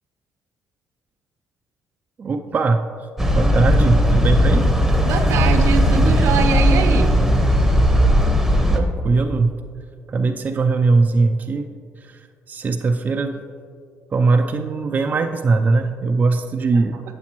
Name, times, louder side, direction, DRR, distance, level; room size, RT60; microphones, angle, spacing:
voice 1, 2.2-2.8 3.3-4.7 8.7-9.5 10.1-11.7 12.1-12.2 12.5-13.4 14.1-17.0, right 3 dB, 35° right, 4 dB, 0.4 m, -20 dB
sound 1, 3.2-8.8, equal, 5° right, 0.9 m, -16 dB
voice 2, 5.0-7.1, right 5 dB, 75° right, 6 dB, 0.7 m, -22 dB
8.1 x 7.2 x 3.0 m, 2.2 s
cardioid pair, 80°, 5 cm